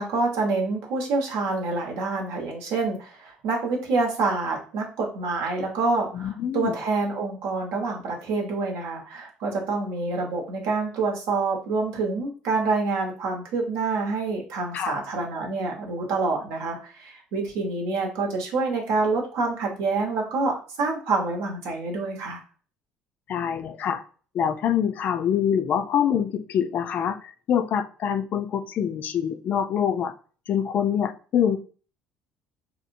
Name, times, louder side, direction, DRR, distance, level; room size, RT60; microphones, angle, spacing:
voice 1, 0.0-22.4, right 3 dB, 80° right, 0 dB, 0.9 m, -27 dB
voice 2, 6.1-6.8 14.7-15.0 23.3-24.0 24.3-30.1 30.5-31.6, left 8 dB, 50° left, 9 dB, 0.3 m, -25 dB
2.9 x 2.0 x 2.5 m, 0.38 s
supercardioid pair, 90°, 4 cm